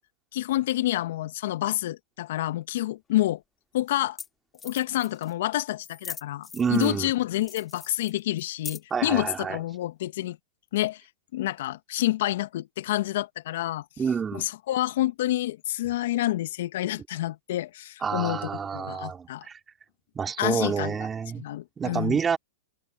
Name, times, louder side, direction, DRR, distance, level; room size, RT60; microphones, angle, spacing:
voice 1, 0.3-3.4 3.7-4.2 4.6-10.4 10.7-11.0 11.3-13.9 14.3-19.5 20.4-21.0 21.4-22.2, left 15 dB, 65° left, 1.6 m, -28 dB
sound 1, 3.1-3.2 3.9-4.3 4.5-5.3 5.8-7.0 7.4-9.0, left 6 dB, 20° left, 3.2 m, -41 dB
voice 2, 6.5-7.1 8.9-9.6 14.0-14.4 18.0-19.6 20.1-21.4 21.8-22.4, right 6 dB, 20° right, 2.7 m, -28 dB
hypercardioid pair, 115°, 0 cm